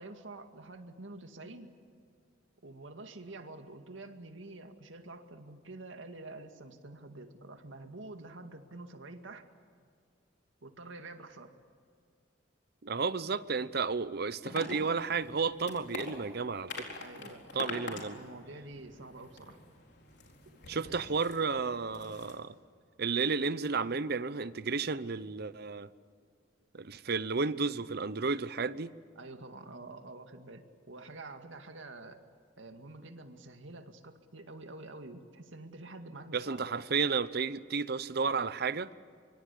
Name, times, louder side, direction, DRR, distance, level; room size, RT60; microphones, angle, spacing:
voice 1, 0.0-1.7 2.6-9.5 10.6-11.5 15.8-15.9 17.0-19.6 20.5-21.0 29.2-32.2 32.6-36.7, right 2 dB, 90° right, 2.1 m, -48 dB
voice 2, 12.8-16.9 17.5-18.2 20.7-22.6 23.0-25.9 26.7-28.9 36.3-38.9, right 4 dB, 55° right, 0.8 m, -32 dB
sound 1, 14.5-22.4, left 3 dB, 65° left, 4.1 m, -45 dB
25.0 x 24.0 x 8.5 m
head